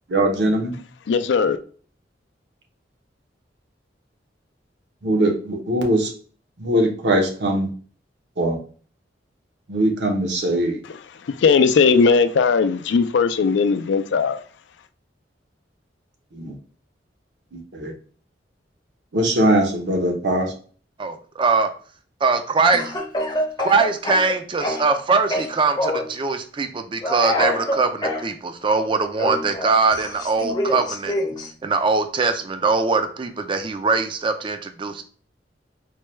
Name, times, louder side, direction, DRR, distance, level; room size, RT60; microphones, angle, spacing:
voice 1, 0.1-0.7 5.0-6.1 6.6-7.7 8.4-8.6 9.7-10.8 16.3-16.5 17.5-17.9 19.1-20.5, right 1 dB, 70° right, 0.9 m, -21 dB
voice 2, 1.1-1.6 11.2-14.4, left 5 dB, 85° left, 0.4 m, -18 dB
voice 3, 21.0-21.7 22.2-22.9 23.6-31.2 31.6-35.0, right 4 dB, 30° right, 0.3 m, -22 dB
Speech / Cough, 22.7-25.0 25.3-26.1 27.0-28.2 29.2-31.5, left 1 dB, 25° left, 0.6 m, -25 dB
4.4 x 2.2 x 3.1 m
head